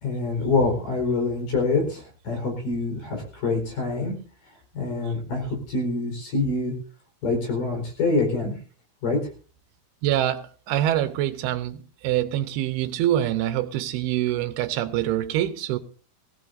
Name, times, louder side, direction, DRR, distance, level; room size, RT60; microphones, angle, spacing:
voice 1, 0.0-4.2 4.7-6.7 7.2-8.5 9.0-9.2, left 3 dB, 60° left, 6.1 m, -25 dB
voice 2, 10.0-15.8, right 12 dB, 85° right, 2.8 m, -25 dB
20.0 x 16.5 x 2.7 m
omnidirectional pair, 4.5 m